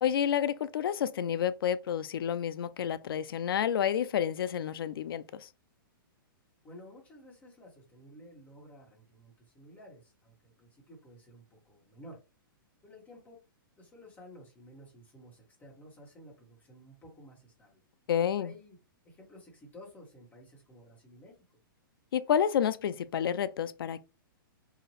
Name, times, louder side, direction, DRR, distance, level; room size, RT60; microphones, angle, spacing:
voice 1, 0.0-5.5 18.1-18.5 22.1-24.0, left 9 dB, 80° left, 0.4 m, -29 dB
voice 2, 6.6-12.2 12.8-13.4 13.8-17.8 18.4-18.8 19.0-21.3, equal, 15° left, 1.3 m, -53 dB
2.7 x 2.4 x 3.1 m
hypercardioid pair, 150°, 12 cm